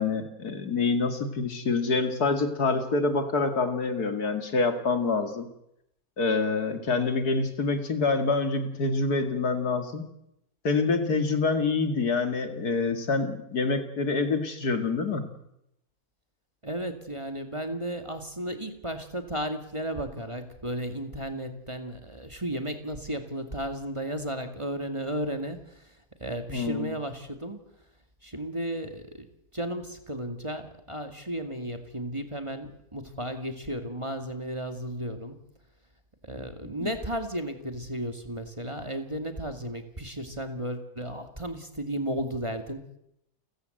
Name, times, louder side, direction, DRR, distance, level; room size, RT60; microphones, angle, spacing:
voice 1, 0.0-5.5 6.2-10.1 10.6-15.2 26.5-26.9 36.8-36.9, left 4 dB, 80° left, 8 dB, 2.8 m, -26 dB
voice 2, 16.6-25.8 26.2-27.6 28.2-29.3 29.5-35.4 36.2-42.8, right 1 dB, 20° right, 7 dB, 2.2 m, -34 dB
29.5 x 15.5 x 7.9 m, 0.80 s
omnidirectional pair, 1.6 m